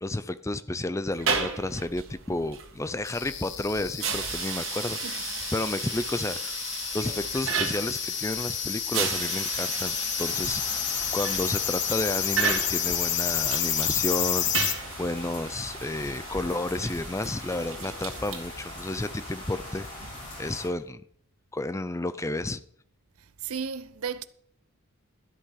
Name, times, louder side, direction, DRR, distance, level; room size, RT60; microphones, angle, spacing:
voice 1, 0.0-5.0 5.5-6.6 6.9-10.8 11.1-19.9 20.4-21.0 21.5-22.6, left 2 dB, 15° left, 0.5 m, -31 dB
sound 1, 1.1-20.7, right 6 dB, 60° right, 2.2 m, -35 dB
sound 2, 3.1-14.7, left 10 dB, 50° left, 1.4 m, -30 dB
voice 2, 5.0-5.3 23.2-24.2, right 6 dB, 75° right, 0.8 m, -35 dB
sound 3, 10.2-20.7, left 2 dB, 35° left, 5.2 m, -42 dB
13.0 x 8.4 x 5.9 m
head